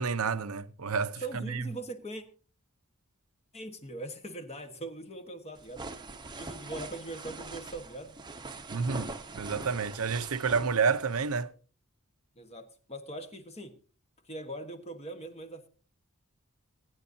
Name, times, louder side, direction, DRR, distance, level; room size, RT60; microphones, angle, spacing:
voice 1, 0.0-1.6 8.7-9.1 9.3-11.5, right 5 dB, 80° right, 0.8 m, -29 dB
voice 2, 1.2-2.2 3.5-5.8 6.3-8.2 12.3-13.8 14.2-15.7, right 2 dB, 30° left, 1.4 m, -41 dB
sound 1, 5.6-11.4, right 3 dB, 20° right, 0.9 m, -43 dB
24.0 x 9.6 x 2.8 m
head